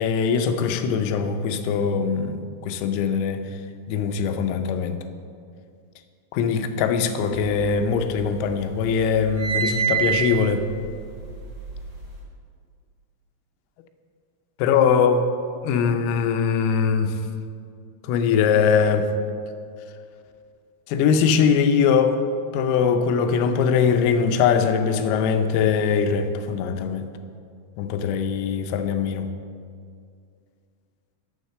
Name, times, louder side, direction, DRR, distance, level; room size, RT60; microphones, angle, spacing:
voice 1, 0.0-3.5 3.9-5.0 6.3-10.7 14.6-15.2 15.6-17.2 18.0-19.1 20.9-22.2 22.5-27.1 27.8-29.3, left 6 dB, 90° left, 7 dB, 3.4 m, -21 dB
sound 1, 7.4-8.4 8.7-12.1, right 8 dB, 35° right, 1.9 m, -28 dB
9.5 x 7.3 x 6.6 m, 2.2 s
omnidirectional pair, 5.9 m